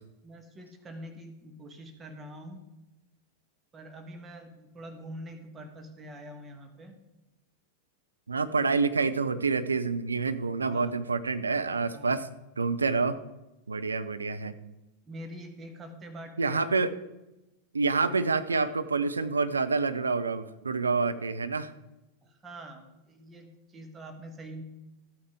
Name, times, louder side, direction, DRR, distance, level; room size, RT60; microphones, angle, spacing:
voice 1, 0.2-2.6 3.7-7.0 10.6-11.0 11.9-12.2 15.1-16.6 22.2-24.6, right 1 dB, 20° right, 5 dB, 1.5 m, -45 dB
voice 2, 8.3-12.3 12.6-13.2 13.7-14.5 16.4-16.9 17.7-21.7, right 4 dB, 75° right, 10 dB, 0.6 m, -27 dB
14.0 x 8.9 x 3.6 m, 0.98 s
figure-of-eight pair, 90°, 0 cm